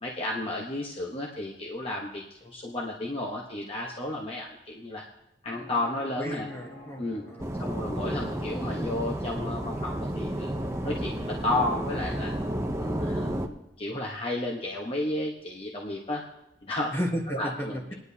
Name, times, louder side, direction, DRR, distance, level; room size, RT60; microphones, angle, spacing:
voice 1, 0.0-5.0 5.4-6.5 7.0-7.2 7.6-10.5 10.8-12.3 12.8-16.3 16.6-16.9 17.3-17.9, left 1 dB, 30° left, -2 dB, 1.1 m, -32 dB
sound 1, 5.5-12.9, left 1 dB, 65° left, 3.1 m, -47 dB
voice 2, 6.1-7.8 16.9-17.9, equal, 15° left, 1 dB, 1.3 m, -34 dB
sound 2, 7.4-13.5, right 1 dB, 15° right, 0.6 m, -31 dB
20.0 x 10.5 x 2.8 m, 0.87 s
head